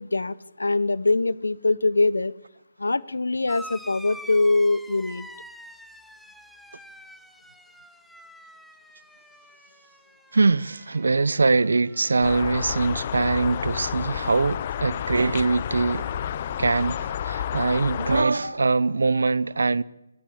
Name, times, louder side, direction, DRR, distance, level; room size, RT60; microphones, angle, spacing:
voice 1, 0.0-2.3 2.8-5.3 18.3-18.6, left 3 dB, 90° left, 0.8 m, -23 dB
sound 1, 3.5-12.5 12.8-13.5 14.6-14.7, equal, ahead, 0.9 m, -46 dB
voice 2, 10.3-16.1 16.6-19.8, right 3 dB, 80° right, 0.8 m, -23 dB
sound 2, 12.2-18.2, left 9 dB, 40° left, 0.8 m, -30 dB
18.0 x 17.5 x 8.6 m
figure-of-eight pair, 150°, 0 cm